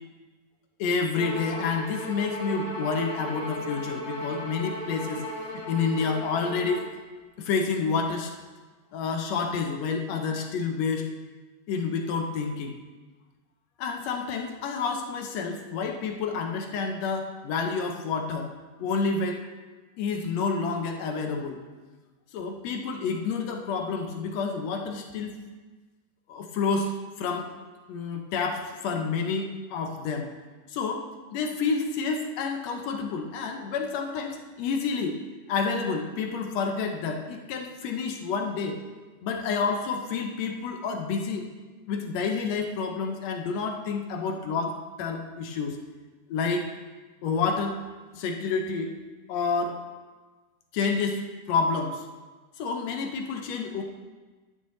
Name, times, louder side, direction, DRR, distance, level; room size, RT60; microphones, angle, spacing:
voice 1, 0.8-5.2 5.5-6.8 7.4-8.3 8.9-11.1 11.7-12.8 13.8-18.5 18.8-19.5 20.0-21.6 22.3-25.4 26.3-27.5 27.9-30.3 30.7-31.0 31.3-35.2 35.5-38.8 39.2-41.5 41.9-45.8 46.3-46.7 47.2-47.8 48.1-48.9 49.3-49.8 50.7-52.1 52.6-53.8, left 5 dB, 70° left, 3 dB, 1.7 m, -29 dB
Bowed string instrument, 1.1-6.9, equal, 50° left, 2.0 m, -36 dB
11.0 x 9.1 x 3.1 m, 1.3 s
omnidirectional pair, 3.6 m